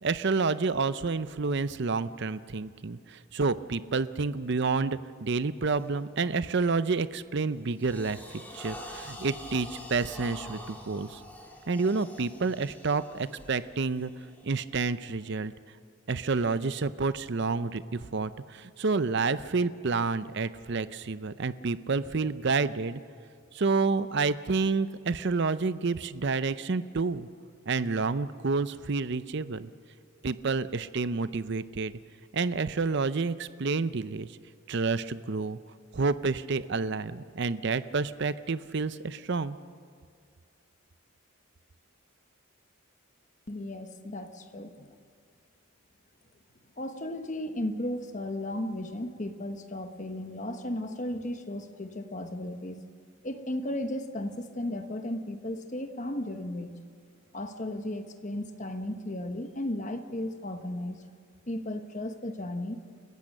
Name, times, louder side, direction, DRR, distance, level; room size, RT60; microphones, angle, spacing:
voice 1, 0.0-11.2 11.7-14.1 14.4-15.5 16.1-23.0 23.5-27.3 27.7-29.7 30.2-31.9 32.3-34.3 34.7-35.6 35.9-39.6, right 4 dB, 55° right, 14 dB, 0.6 m, -29 dB
sound 1, 5.7-6.0 6.5-6.8 7.2-15.3, left 1 dB, 10° left, 2.5 m, -46 dB
voice 2, 43.5-44.9 46.8-52.8 53.2-56.8 57.3-61.0 61.5-62.8, left 1 dB, 35° left, 7 dB, 1.1 m, -35 dB
29.0 x 15.0 x 6.6 m, 2.1 s
head